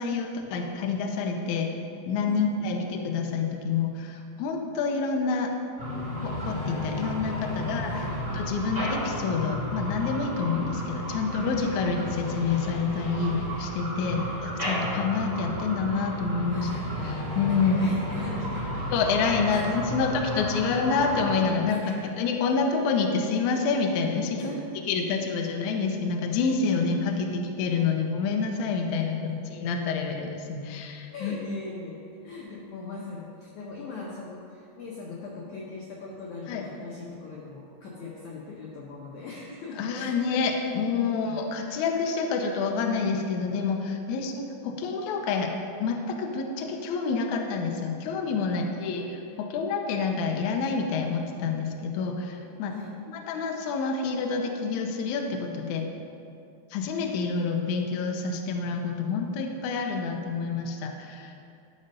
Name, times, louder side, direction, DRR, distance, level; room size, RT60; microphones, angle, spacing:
voice 1, 0.0-1.7 2.1-5.5 6.2-7.9 8.3-16.7 17.0-17.8 18.9-24.6 24.9-31.4 36.5-36.6 39.8-45.5 45.8-52.7 53.1-55.8 56.7-61.3, left 5 dB, 85° left, 3 dB, 1.7 m, -28 dB
voice 2, 2.3-2.6 7.8-8.2 14.0-14.4 16.5-16.8 17.5-18.8 19.5-19.6 19.9-20.0 21.7-22.0 24.4-24.6 31.1-40.2 40.6-40.7 41.0-41.4 48.4-48.9 52.7-52.9, left 3 dB, 70° left, -4 dB, 1.9 m, -40 dB
sound 1, 5.8-21.4, equal, 15° right, 1.8 m, -33 dB
12.5 x 5.3 x 5.3 m, 2.6 s
omnidirectional pair, 4.5 m